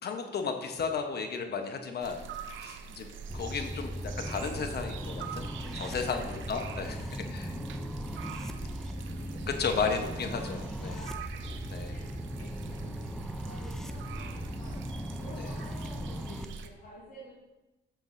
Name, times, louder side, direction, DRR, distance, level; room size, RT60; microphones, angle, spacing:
voice 1, 0.0-3.1 3.3-7.5 9.5-11.0 11.7-11.9 15.4-15.5, left 5 dB, 55° left, 5 dB, 1.1 m, -34 dB
sound 1, 2.0-16.7, right 6 dB, 75° right, 0.6 m, -45 dB
sound 2, 3.3-16.5, equal, ahead, 0.5 m, -38 dB
voice 2, 5.7-6.2 7.2-12.0 12.3-14.8 15.1-17.3, left 1 dB, 85° left, -8 dB, 2.5 m, -51 dB
11.5 x 7.0 x 2.7 m, 1.0 s
cardioid pair, 90°, 20 cm